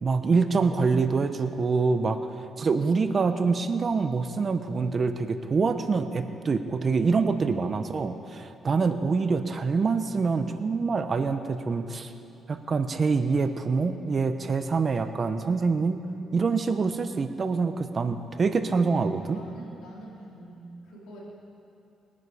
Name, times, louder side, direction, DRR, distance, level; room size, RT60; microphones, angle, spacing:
voice 1, 0.0-12.1 12.5-16.0 16.3-19.4, right 4 dB, 40° right, 9 dB, 0.8 m, -25 dB
voice 2, 19.3-21.2, right 1 dB, 90° left, -4 dB, 3.7 m, -46 dB
21.0 x 9.7 x 4.9 m, 2.7 s
cardioid pair, 90°, 0 cm